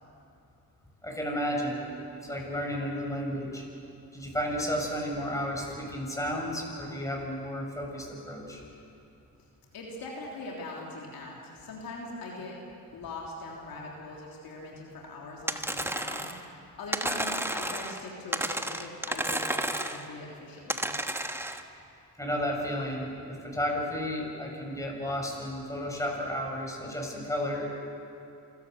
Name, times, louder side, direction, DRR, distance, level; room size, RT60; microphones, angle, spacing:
voice 1, 1.0-1.9 2.2-3.6 4.1-8.6 22.2-27.7, equal, 10° left, -1 dB, 7.3 m, -32 dB
voice 2, 9.7-12.6 12.9-20.9, left 2 dB, 75° left, -2 dB, 3.4 m, -41 dB
sound 1, 15.5-16.4 16.9-18.0 18.3-20.1 20.7-21.6, right 1 dB, 5° right, 1.3 m, -32 dB
27.5 x 13.0 x 8.1 m, 2.6 s
supercardioid pair, 60°, 36 cm